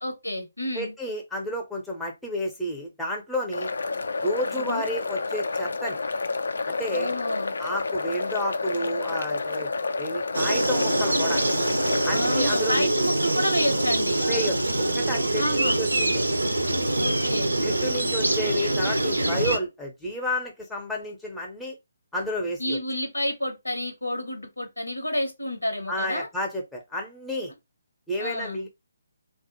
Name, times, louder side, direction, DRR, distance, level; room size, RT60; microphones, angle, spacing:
voice 1, 0.0-0.9 4.5-4.8 6.9-7.5 12.1-14.2 15.4-15.8 17.0-17.5 22.6-26.3 28.2-28.6, left 1 dB, 90° left, 0.9 m, -29 dB
voice 2, 0.7-3.7 4.2-6.0 6.7-7.1 7.6-9.7 10.0-11.4 12.0-12.9 14.3-16.2 17.6-21.8 22.1-22.8 25.9-27.5 28.1-28.7, left 1 dB, 5° left, 0.6 m, -31 dB
sound 1, 3.5-12.7, left 3 dB, 65° left, 0.3 m, -30 dB
sound 2, 10.3-19.6, right 1 dB, 80° right, 0.4 m, -24 dB
2.3 x 2.1 x 2.8 m
figure-of-eight pair, 140°, 0 cm